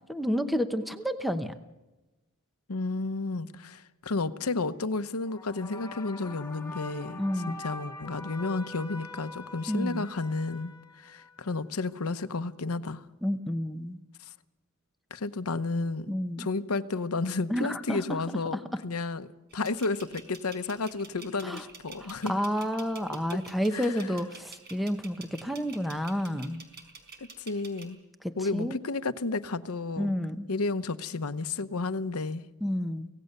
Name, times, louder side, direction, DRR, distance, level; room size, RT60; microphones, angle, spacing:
voice 1, 0.1-1.6 7.2-7.6 9.7-10.1 13.2-14.0 16.1-16.5 17.5-18.2 18.5-18.6 21.4-21.6 22.0-26.6 28.2-28.8 30.0-30.5 32.6-33.1, equal, ahead, 0.9 m, -30 dB
voice 2, 2.7-13.0 15.1-16.1 16.4-19.3 19.5-22.3 23.7-23.9 27.4-28.0 28.4-30.1 30.5-32.4, left 3 dB, 75° left, 0.9 m, -32 dB
sound 1, 5.3-11.6, left 2 dB, 15° left, 1.4 m, -44 dB
sound 2, 19.5-27.8, right 4 dB, 50° right, 4.4 m, -48 dB
25.0 x 17.5 x 6.7 m
head